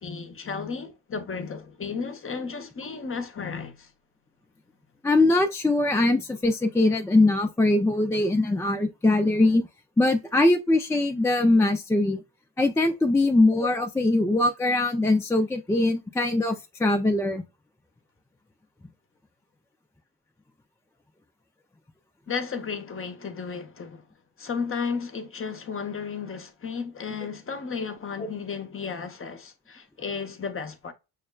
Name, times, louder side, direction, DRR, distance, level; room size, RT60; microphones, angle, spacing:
voice 1, 0.0-3.9 22.3-24.0 24.4-30.9, left 5 dB, 30° left, 0.8 m, -33 dB
voice 2, 5.0-9.6 10.0-12.2 12.6-17.4, left 2 dB, 5° left, 0.4 m, -22 dB
6.3 x 2.1 x 2.3 m
supercardioid pair, 75°, 45 cm